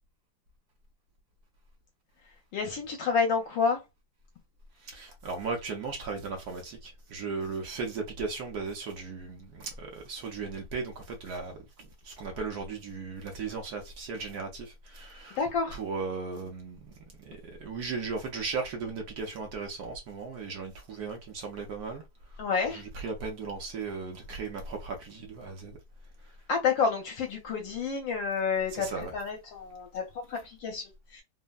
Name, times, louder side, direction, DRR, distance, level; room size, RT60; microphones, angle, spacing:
voice 1, 2.5-3.8 15.4-15.8 22.4-22.8 26.5-31.2, left 5 dB, 75° left, 1.4 m, -29 dB
voice 2, 4.8-16.9 17.2-22.0 22.3-25.8 26.2-26.3 28.7-29.2, right 4 dB, 65° right, 1.0 m, -37 dB
3.4 x 2.0 x 2.2 m
omnidirectional pair, 2.1 m